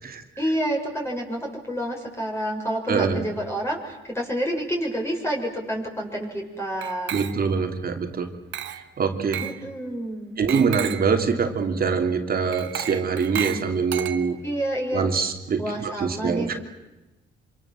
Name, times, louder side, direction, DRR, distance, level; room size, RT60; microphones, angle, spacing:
voice 1, 0.4-7.2 9.4-10.4 14.4-15.1 15.6-16.5, equal, 15° left, -1 dB, 6.8 m, -29 dB
voice 2, 2.9-3.2 7.1-8.3 8.7-9.4 10.4-14.4 14.9-16.5, right 5 dB, 50° right, 5 dB, 3.1 m, -24 dB
Glass, 6.8-7.7 8.5-8.9 9.3-9.6 10.5-11.1 12.5-14.6, right 10 dB, 70° right, 1.6 m, -33 dB
26.5 x 26.0 x 7.7 m, 1.1 s
cardioid pair, 90°, 20 cm